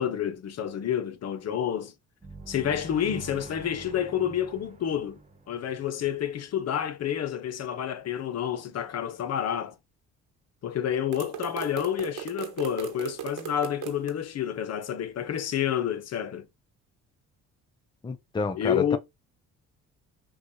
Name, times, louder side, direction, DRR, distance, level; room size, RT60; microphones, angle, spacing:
voice 1, 0.0-1.9 2.5-5.2 5.5-9.7 10.6-16.5 18.5-19.0, left 9 dB, 50° left, 0.7 m, -29 dB
sound 1, 2.2-6.8, right 2 dB, 20° right, 1.2 m, -45 dB
sound 2, 11.1-14.1, right 11 dB, 65° right, 1.0 m, -37 dB
voice 2, 18.0-19.0, left 4 dB, 15° left, 0.5 m, -29 dB
5.7 x 2.3 x 2.8 m
supercardioid pair, 70°, 33 cm